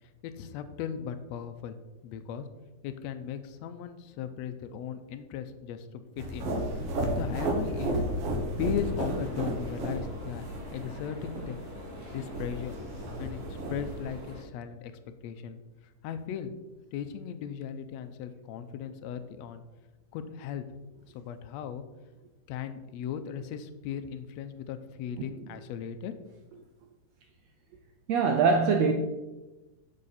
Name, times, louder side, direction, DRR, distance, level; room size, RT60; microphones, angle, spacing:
voice 1, 0.2-1.8 2.0-2.5 2.8-6.5 7.2-8.0 8.6-10.4 10.7-11.8 12.0-12.8 13.2-13.4 13.7-14.9 15.2-15.6 16.0-16.5 16.9-19.6 20.1-20.8 21.1-21.8 22.5-26.2, left 8 dB, 80° left, 1.5 m, -37 dB
sound 1, 6.2-14.2, right 1 dB, 55° right, 2.1 m, -33 dB
sound 2, 8.8-14.4, equal, 10° left, 1.1 m, -45 dB
voice 2, 28.1-28.9, right 5 dB, 80° right, 1.5 m, -22 dB
10.0 x 6.6 x 4.2 m
omnidirectional pair, 3.7 m